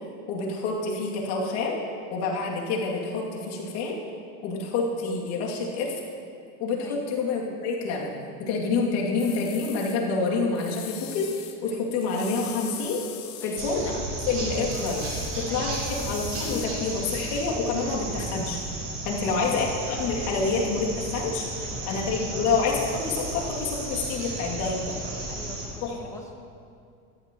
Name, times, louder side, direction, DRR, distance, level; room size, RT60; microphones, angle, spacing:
voice 1, 0.3-1.8 2.1-4.0 4.4-6.0 6.6-11.3 11.6-13.0 13.4-13.9 14.3-15.1 15.3-18.6 19.0-21.4 21.9-25.0 25.8-26.1, left 4 dB, 60° left, -3 dB, 2.7 m, -27 dB
sound 1, 9.2-10.0 10.5-11.6 12.0-13.6 14.7-16.7, left 11 dB, 90° left, 1.3 m, -41 dB
sound 2, 13.6-25.7, right 1 dB, 40° right, 3.7 m, -33 dB
voice 2, 19.0-19.6 21.6-22.0 25.3-26.3, left 1 dB, 5° left, 1 dB, 1.4 m, -45 dB
17.0 x 13.5 x 3.1 m, 2.4 s
supercardioid pair, 145°, 43 cm